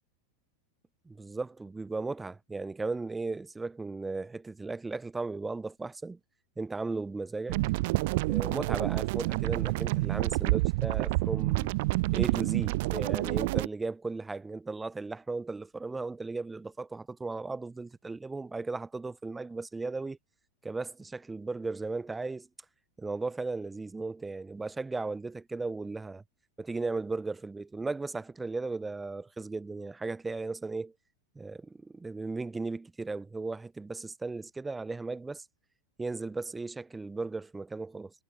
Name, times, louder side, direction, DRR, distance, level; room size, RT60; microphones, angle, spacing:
voice 1, 1.1-6.2 6.6-7.6 8.3-11.7 12.1-20.2 20.6-22.5 23.0-26.2 26.6-30.9 31.3-35.4 36.0-38.1, right 3 dB, 10° right, 4.2 m, -36 dB
pineapple dog fence acidbass, 7.5-13.7, right 22 dB, 60° right, 3.6 m, -28 dB
hypercardioid pair, 115°, 0 cm